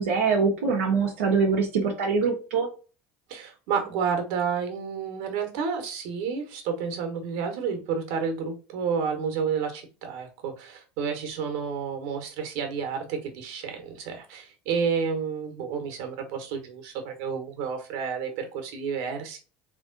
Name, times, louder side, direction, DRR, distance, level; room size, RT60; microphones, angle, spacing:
voice 1, 0.0-2.7, right 5 dB, 85° right, -3 dB, 1.0 m, -23 dB
voice 2, 3.3-19.4, right 6 dB, 70° right, 6 dB, 1.3 m, -30 dB
3.5 x 3.1 x 3.9 m, 0.34 s
hypercardioid pair, 85°, 6 cm